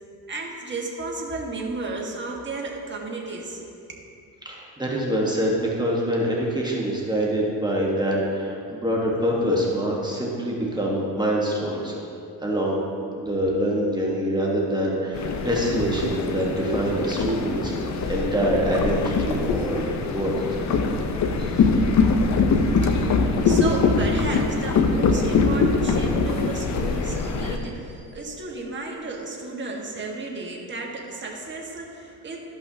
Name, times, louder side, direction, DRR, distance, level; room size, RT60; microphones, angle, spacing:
voice 1, 0.3-3.6 22.8-32.4, right 2 dB, 30° right, -1 dB, 1.5 m, -33 dB
voice 2, 4.4-12.0 12.4-12.8 13.2-17.8 18.1-20.5 21.4-21.7 22.8-22.9, equal, 10° right, -4 dB, 1.3 m, -25 dB
sound 1, 15.1-27.6, left 4 dB, 45° left, 0.8 m, -23 dB
13.0 x 5.6 x 2.8 m, 2.6 s
cardioid pair, 95°, 37 cm